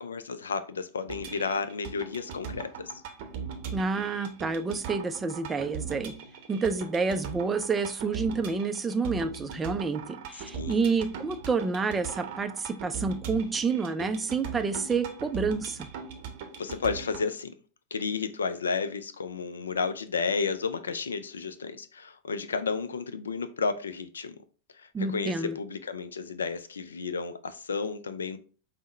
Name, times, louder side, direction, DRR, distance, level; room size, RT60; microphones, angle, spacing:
voice 1, 0.0-2.9 10.5-10.8 16.6-17.5 17.9-24.4 24.7-28.4, left 5 dB, 70° left, 0.3 m, -32 dB
sound 1, 1.1-17.3, right 6 dB, 50° right, 0.6 m, -40 dB
voice 2, 3.7-6.1 6.5-15.9 24.9-25.6, right 4 dB, 15° right, 0.3 m, -29 dB
5.3 x 2.0 x 3.2 m
figure-of-eight pair, 90°, 0 cm